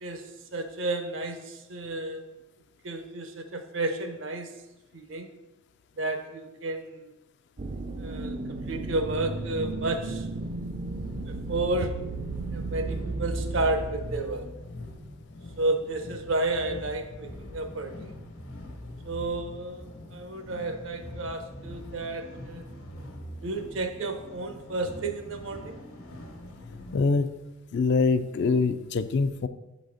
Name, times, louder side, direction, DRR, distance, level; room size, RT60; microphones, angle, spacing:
voice 1, 0.0-2.2 2.8-4.6 4.9-5.3 6.0-7.1 8.0-10.3 11.3-12.0 12.5-14.6 15.6-18.2 19.0-22.7 23.4-25.8, right 2 dB, 65° right, 7 dB, 0.7 m, -32 dB
sound 1, 7.6-27.0, left 1 dB, 80° left, 1.2 m, -44 dB
sound 2, 7.6-14.2, right 2 dB, 30° right, 0.3 m, -34 dB
voice 2, 26.9-27.3 27.7-29.5, left 4 dB, 55° left, 11 dB, 0.3 m, -24 dB
6.2 x 4.0 x 4.8 m, 1.0 s
head